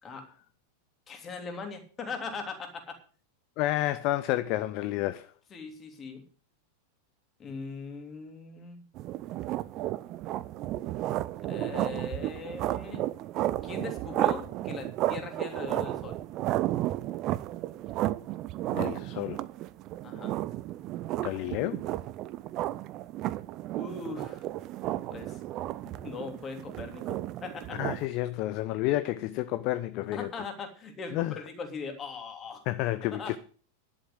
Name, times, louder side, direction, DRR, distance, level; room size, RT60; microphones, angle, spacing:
voice 1, 1.1-3.0 5.5-6.2 7.4-8.8 11.5-13.0 13.6-16.2 20.0-20.4 23.8-24.4 25.1-25.4 25.9-27.8 30.1-32.6 33.1-33.4, left 4 dB, 25° left, 3.2 m, -40 dB
voice 2, 3.6-5.3 18.7-19.4 21.2-21.8 27.8-30.3 31.1-31.4 32.7-33.4, left 15 dB, 40° left, 0.6 m, -30 dB
sound 1, 9.0-28.1, right 14 dB, 35° right, 0.6 m, -33 dB
11.0 x 7.9 x 7.9 m
figure-of-eight pair, 90°, 0 cm